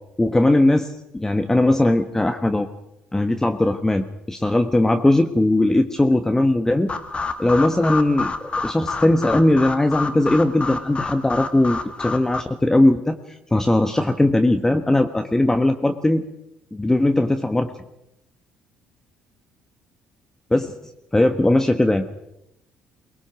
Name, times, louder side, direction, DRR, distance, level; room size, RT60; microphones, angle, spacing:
voice 1, 0.2-2.7 3.1-6.9 7.4-8.3 8.6-13.2 13.5-16.2 16.7-17.7 20.5-20.7 21.1-22.0, left 1 dB, 15° left, 6 dB, 1.4 m, -19 dB
sound 1, 6.9-12.4, left 3 dB, 30° left, 1.9 m, -29 dB
23.0 x 20.0 x 6.3 m, 0.84 s
hypercardioid pair, 60°, 4 cm